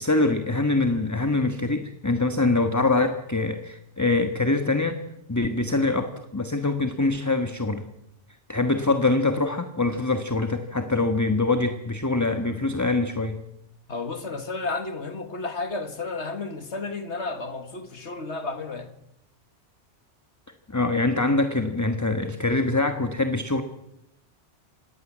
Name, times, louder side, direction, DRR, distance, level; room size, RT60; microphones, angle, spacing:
voice 1, 0.0-5.0 5.3-7.8 8.5-13.4 20.7-23.6, left 2 dB, 15° left, 1.4 m, -24 dB
voice 2, 13.9-18.9, left 3 dB, 70° left, 2.1 m, -32 dB
26.5 x 19.0 x 7.5 m
omnidirectional pair, 1.2 m